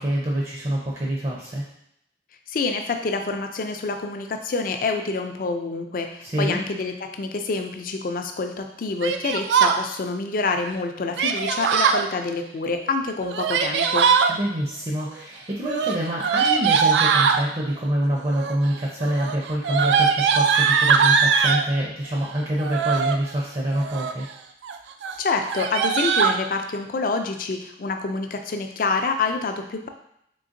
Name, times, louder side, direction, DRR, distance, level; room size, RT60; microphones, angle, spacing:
voice 1, 0.0-1.6 6.2-6.6 14.3-24.3, right 1 dB, 35° right, -3 dB, 0.5 m, -26 dB
voice 2, 2.5-14.1 25.2-29.9, left 3 dB, 50° left, 5 dB, 0.4 m, -27 dB
Yell, 9.0-9.8 11.2-12.0 13.2-14.3 15.6-17.4 18.3-18.7 19.0-21.7 22.6-23.2 23.7-24.2 24.6-24.8 25.0-25.1 25.5-26.4, right 6 dB, 80° right, 0.3 m, -21 dB
3.8 x 3.4 x 2.5 m, 0.75 s
head